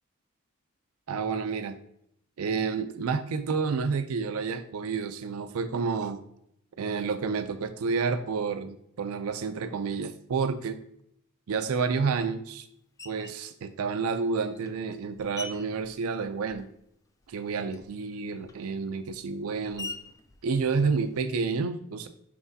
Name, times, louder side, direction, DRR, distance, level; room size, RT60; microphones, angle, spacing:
voice 1, 1.1-1.8 2.4-6.2 6.8-10.8 11.5-12.7 13.0-16.7 17.3-19.9 20.4-22.1, right 5 dB, 85° right, 9 dB, 0.4 m, -29 dB
Screech, 13.0-13.5 14.2-16.9 17.2-21.5, left 3 dB, 15° left, 0.3 m, -46 dB
5.9 x 5.9 x 2.7 m, 0.75 s
head